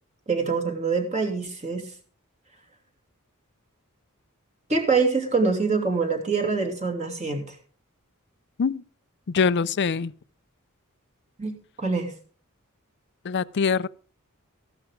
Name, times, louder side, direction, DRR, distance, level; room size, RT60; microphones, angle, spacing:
voice 1, 0.3-1.8 4.7-7.6 11.4-12.1, right 4 dB, 30° right, 2.6 m, -25 dB
voice 2, 9.3-10.1 13.2-13.9, left 5 dB, 50° left, 0.5 m, -23 dB
14.5 x 12.0 x 3.7 m
head